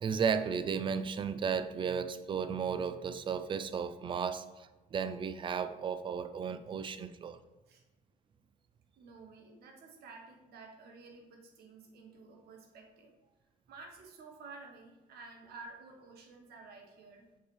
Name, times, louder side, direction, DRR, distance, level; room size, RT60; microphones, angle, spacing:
voice 1, 0.0-7.4, right 6 dB, 30° right, 12 dB, 0.4 m, -34 dB
voice 2, 9.0-13.1 13.7-17.3, right 3 dB, 70° right, 3 dB, 1.2 m, -52 dB
6.6 x 5.3 x 3.2 m, 1.1 s
cardioid pair, 110°, 17 cm